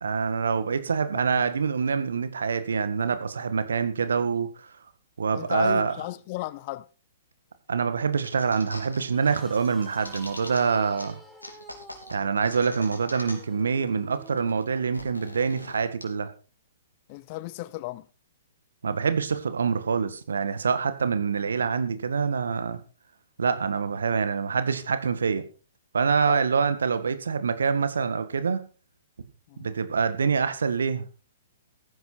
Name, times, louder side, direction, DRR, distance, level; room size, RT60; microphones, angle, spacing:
voice 1, 0.0-4.7 5.2-6.0 7.7-11.2 12.1-16.3 18.8-22.8 23.4-25.4 25.9-28.6 29.6-31.1, right 5 dB, 65° right, 1.7 m, -25 dB
voice 2, 5.3-6.9 17.1-18.1 26.3-26.4 29.5-29.7, left 19 dB, 35° left, 0.7 m, -35 dB
sound 1, 8.2-9.0 9.3-10.6 11.0-11.1 11.4-13.6 13.9-14.0 14.1-16.0, left 1 dB, 85° left, 3.7 m, -41 dB
sound 2, 9.1-14.7, equal, ahead, 2.6 m, -49 dB
14.5 x 10.5 x 4.4 m
figure-of-eight pair, 115°, 0 cm